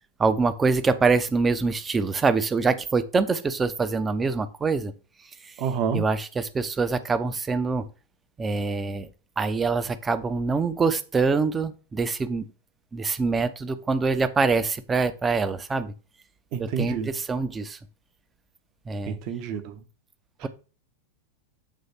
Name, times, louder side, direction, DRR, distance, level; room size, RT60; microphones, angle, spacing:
voice 1, 0.2-4.9 5.4-5.5 5.9-7.9 8.4-9.1 9.4-12.5 12.9-15.9 16.6-17.8 18.9-19.2, right 4 dB, 15° right, 0.6 m, -25 dB
voice 2, 5.6-6.0 16.5-17.1 19.1-19.8 20.4-20.5, right 7 dB, 45° right, 0.8 m, -29 dB
7.3 x 3.2 x 4.1 m
figure-of-eight pair, 90°, 0 cm